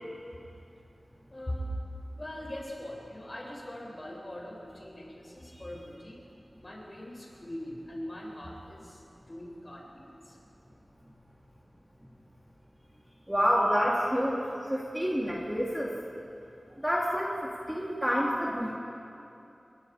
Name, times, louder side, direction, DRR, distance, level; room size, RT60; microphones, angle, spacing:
voice 1, 1.3-1.7 2.2-6.2 6.6-10.4 13.1-13.2, equal, 35° left, -3 dB, 7.6 m, -41 dB
voice 2, 13.3-14.4 14.7-15.9 16.8-17.3 17.7-18.7, equal, 10° right, -4 dB, 3.0 m, -28 dB
29.0 x 24.5 x 5.1 m, 2.7 s
wide cardioid pair, 70°, 0 cm